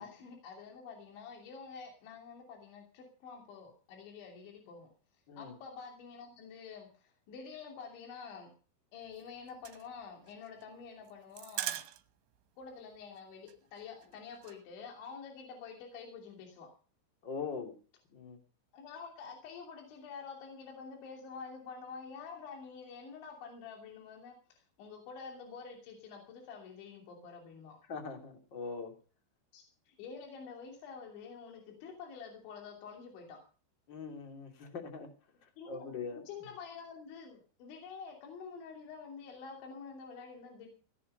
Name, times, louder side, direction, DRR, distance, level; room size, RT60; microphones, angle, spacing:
voice 1, 0.0-4.9 5.4-8.5 8.9-11.8 12.6-16.7 18.7-27.8 29.5-33.4 35.6-40.7, left 5 dB, 75° left, 2 dB, 5.2 m, -48 dB
sound 1, 9.0-12.4 12.6-12.7 13.0-13.2 13.5-14.6, right 14 dB, 75° right, 3.2 m, -42 dB
voice 2, 17.2-17.7 18.1-18.4 27.9-28.9 33.9-35.1 35.7-36.2, left 5 dB, 30° left, 5 dB, 2.8 m, -41 dB
17.5 x 10.5 x 5.5 m, 0.38 s
omnidirectional pair, 5.4 m